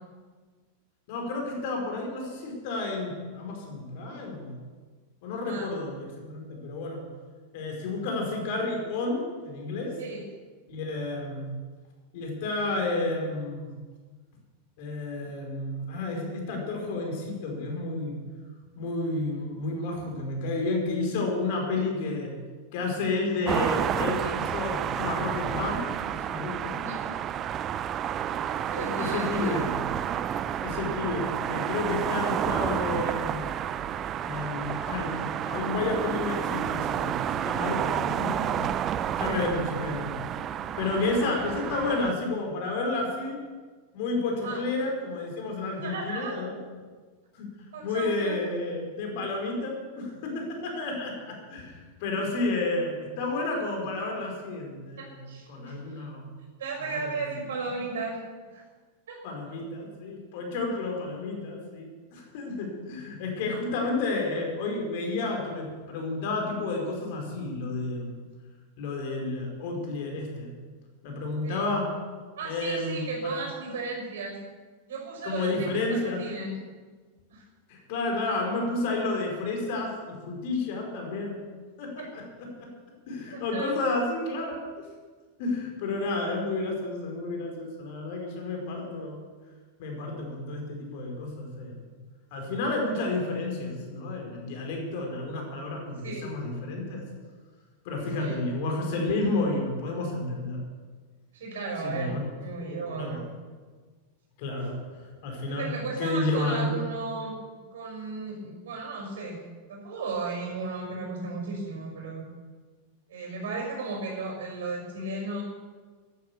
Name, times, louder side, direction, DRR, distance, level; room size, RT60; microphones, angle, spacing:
voice 1, 1.1-4.6 5.2-7.1 7.5-9.9 10.7-11.5 12.1-13.7 14.8-18.2 18.8-22.3 22.7-26.8 28.7-29.7 30.6-33.4 34.2-38.7 39.2-40.2 40.8-43.4 43.9-46.6 47.3-47.5 47.8-56.2 56.9-57.1 59.2-68.2 68.8-70.5 71.0-71.9 72.4-73.4 75.2-76.2 77.7-81.4 81.8-82.7 83.1-84.8 85.4-89.2 89.8-91.9 92.3-97.0 97.8-100.6 101.8-102.3 102.6-103.2 104.4-105.7 106.0-106.7, left 2 dB, 50° left, 1 dB, 4.7 m, -31 dB
sound 1, 23.5-42.1, right 9 dB, 30° right, 0.6 m, -30 dB
voice 2, 26.7-27.0 28.7-29.6 39.2-39.4 44.4-44.6 45.8-46.3 47.7-48.4 55.0-56.0 56.6-58.2 58.5-58.6 59.1-59.2 71.4-71.7 72.4-74.4 74.9-76.5 77.3-77.5 82.0-82.1 83.3-83.7 96.0-96.3 98.2-98.4 101.3-103.2 105.5-107.3 107.7-109.4 109.7-112.2 113.1-115.4, right 3 dB, 60° right, 1 dB, 5.6 m, -35 dB
13.5 x 12.0 x 7.1 m, 1.4 s
figure-of-eight pair, 90°, 0 cm